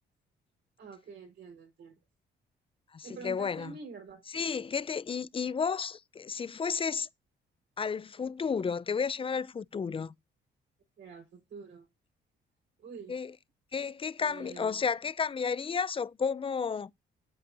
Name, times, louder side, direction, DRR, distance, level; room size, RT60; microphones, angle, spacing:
voice 1, 0.8-1.9 3.0-4.2 11.0-11.9 12.8-13.2 14.2-14.8, right 5 dB, 65° right, 4.7 m, -47 dB
voice 2, 2.9-3.8 4.3-7.1 7.8-10.1 13.1-13.4 13.7-16.9, left 6 dB, 25° left, 0.5 m, -32 dB
8.7 x 8.2 x 2.7 m
cardioid pair, 90°, 20 cm